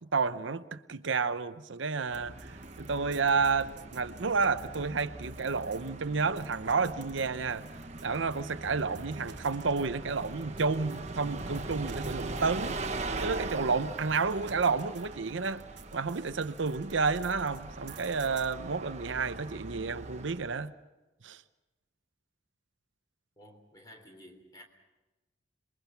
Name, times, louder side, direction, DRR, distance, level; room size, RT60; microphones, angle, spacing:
voice 1, 0.1-7.6 8.0-12.8 13.2-15.7 15.9-20.7 21.2-21.4, right 4 dB, 75° right, 0.8 m, -30 dB
Bus, 2.0-20.6, right 2 dB, 35° right, 1.2 m, -41 dB
sound 1, 2.1-18.5, right 5 dB, 60° right, 1.1 m, -54 dB
voice 2, 23.4-24.6, left 1 dB, 20° left, 3.6 m, -53 dB
27.0 x 22.5 x 5.8 m
head